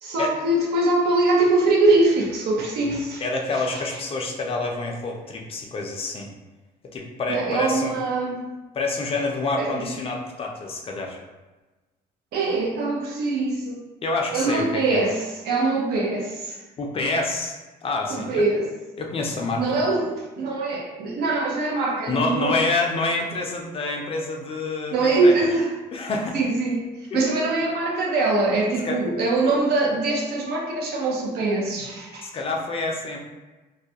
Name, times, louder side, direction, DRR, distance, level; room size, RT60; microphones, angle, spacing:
voice 1, 0.0-3.2 7.3-8.4 9.6-9.7 12.3-13.8 14.3-16.6 18.1-18.7 19.6-22.6 24.9-25.7 26.3-26.9 27.1-32.3, right 2 dB, 75° right, -1 dB, 0.6 m, -23 dB
voice 2, 3.2-6.3 6.9-8.0 8.7-11.2 14.0-15.0 16.8-17.6 17.8-18.4 19.0-19.8 22.1-25.5 25.9-26.4 27.1-27.3 28.8-29.0 32.2-33.2, left 3 dB, 35° left, 1 dB, 0.4 m, -27 dB
2.3 x 2.1 x 2.7 m, 1.2 s
cardioid pair, 110°, 17 cm